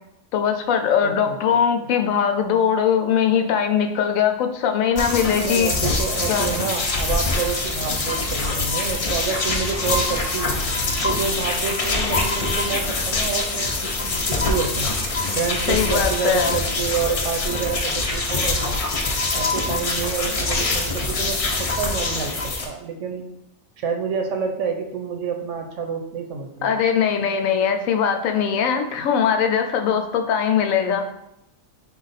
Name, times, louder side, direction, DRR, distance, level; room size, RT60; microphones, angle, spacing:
voice 1, 0.3-5.7 6.3-6.6 15.7-16.6 26.6-31.1, left 7 dB, 85° left, 6 dB, 1.0 m, -21 dB
voice 2, 1.0-1.6 5.4-10.6 11.0-14.9 15.3-18.8 19.3-23.3 23.8-26.8, right 6 dB, 70° right, 4 dB, 0.9 m, -28 dB
sound 1, 5.0-22.7, left 3 dB, 55° left, 0.3 m, -24 dB
sound 2, 8.7-15.6, right 1 dB, 15° right, 0.5 m, -42 dB
4.5 x 2.4 x 4.0 m, 0.81 s
omnidirectional pair, 1.4 m